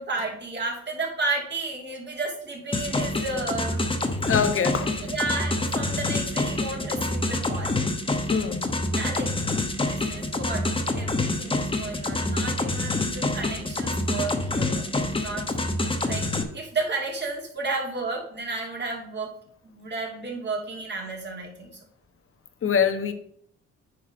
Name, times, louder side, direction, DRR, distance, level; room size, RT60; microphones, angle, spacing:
voice 1, 0.0-3.8 5.0-7.8 8.9-9.4 9.8-10.7 10.9-14.8 15.2-15.5 16.1-19.3 19.7-21.7, right 3 dB, 35° right, 2.9 m, -32 dB
sound 1, 2.7-16.4, left 2 dB, 15° left, 1.1 m, -27 dB
voice 2, 4.3-4.9 8.3-8.7 22.6-23.1, left 7 dB, 45° left, 1.2 m, -23 dB
9.4 x 4.8 x 5.2 m
cardioid pair, 90°, 30 cm